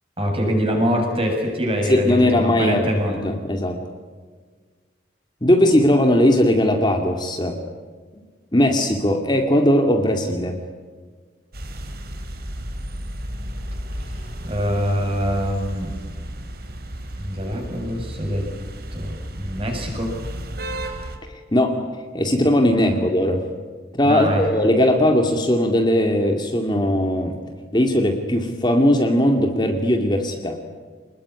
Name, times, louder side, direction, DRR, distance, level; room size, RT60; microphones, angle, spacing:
voice 1, 0.2-3.2 14.0-15.9 17.2-18.5 18.9-20.2 22.7-23.1 24.0-24.5, equal, 30° right, 2 dB, 7.3 m, -24 dB
voice 2, 1.9-3.8 5.4-7.6 8.5-10.6 21.5-21.8 22.1-23.4 23.9-27.4 27.7-30.6, left 1 dB, 25° left, 3 dB, 2.4 m, -19 dB
sound 1, 11.5-21.2, right 1 dB, 50° right, 3.5 m, -33 dB
27.5 x 21.0 x 9.9 m, 1.5 s
head